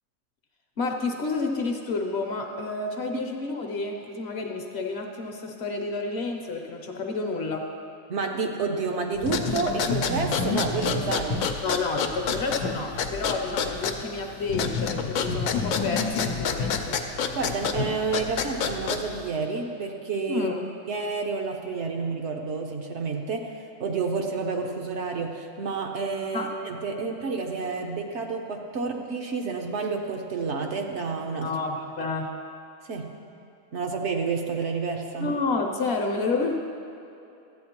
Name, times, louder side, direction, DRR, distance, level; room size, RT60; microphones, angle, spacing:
voice 1, 0.8-7.7 11.6-17.0 20.3-20.6 26.3-26.6 31.4-32.4 35.2-36.6, left 3 dB, 60° left, 3 dB, 0.9 m, -30 dB
voice 2, 8.1-11.5 17.3-20.5 20.9-31.5 32.8-33.2 33.7-35.4, right 4 dB, 65° right, 2 dB, 0.9 m, -30 dB
sound 1, 9.2-19.3, left 5 dB, 85° left, 1.0 m, -28 dB
13.0 x 8.6 x 2.9 m, 2.8 s
omnidirectional pair, 1.4 m